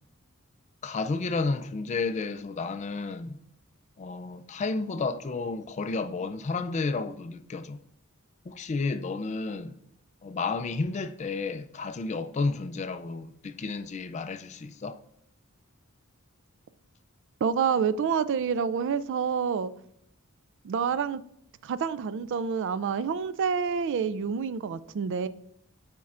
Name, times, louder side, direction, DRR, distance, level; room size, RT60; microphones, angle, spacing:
voice 1, 0.8-3.4 4.0-7.8 8.5-9.7 10.2-15.0, left 3 dB, 30° left, 0.3 m, -31 dB
voice 2, 17.4-19.7 20.6-21.2 21.6-25.3, right 6 dB, 60° right, 0.3 m, -28 dB
9.4 x 4.4 x 2.5 m
head